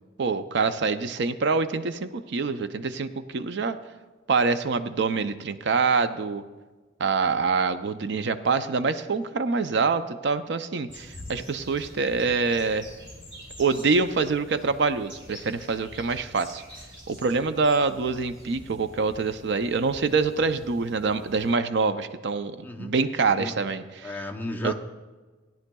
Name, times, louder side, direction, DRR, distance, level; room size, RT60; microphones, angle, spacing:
voice 1, 0.2-3.8 4.3-6.4 7.0-12.9 13.6-16.6 17.1-24.1 24.6-24.7, right 4 dB, 60° right, 10 dB, 0.5 m, -25 dB
sound 1, 10.9-21.5, equal, 25° right, 2.6 m, -46 dB
voice 2, 22.6-22.9 23.3-23.5 24.0-24.7, left 2 dB, 10° left, 1 dB, 0.7 m, -34 dB
17.5 x 10.5 x 2.3 m, 1.3 s
head